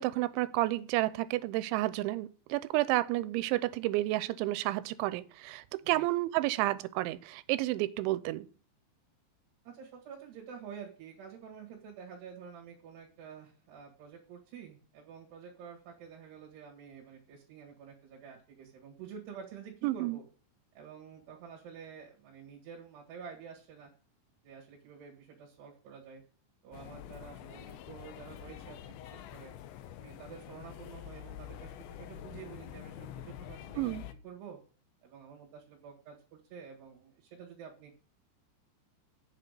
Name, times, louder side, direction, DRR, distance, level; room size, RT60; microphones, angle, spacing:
voice 1, 0.0-8.5 19.8-20.2 33.8-34.0, right 17 dB, 90° right, 3.0 m, -31 dB
voice 2, 9.7-20.2 20.8-23.9 24.4-26.2 26.6-29.5 29.9-34.0 34.2-34.6 35.0-38.0, right 7 dB, 65° right, 3.8 m, -49 dB
sound 1, 26.7-34.1, left 11 dB, 85° left, 2.1 m, -46 dB
8.2 x 7.6 x 6.6 m
omnidirectional pair, 5.2 m